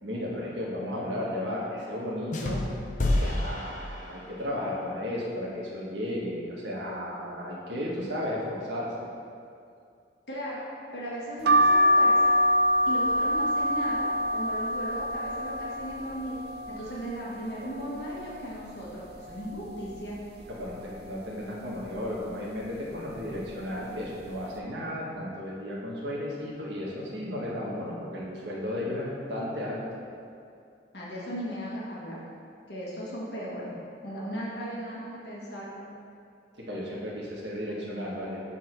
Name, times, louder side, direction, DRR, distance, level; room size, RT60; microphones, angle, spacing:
voice 1, 0.0-2.7 3.0-8.9 20.5-30.0 36.6-38.4, left 1 dB, 90° right, -5 dB, 1.6 m, -34 dB
sound 1, 2.3-4.5, left 1 dB, 45° left, 0.7 m, -29 dB
voice 2, 10.3-10.7 10.9-12.3 12.9-16.4 16.7-20.2 30.9-32.2 32.7-33.7 34.0-35.8, equal, 70° left, -6 dB, 1.5 m, -36 dB
sound 2, 11.5-17.1 17.6-18.4 18.8-18.9 19.0-20.2 20.6-21.0 21.8-22.1 22.9-23.1 23.4-23.6, equal, 65° right, 0.5 m, -25 dB
7.3 x 3.7 x 6.0 m, 2.4 s
head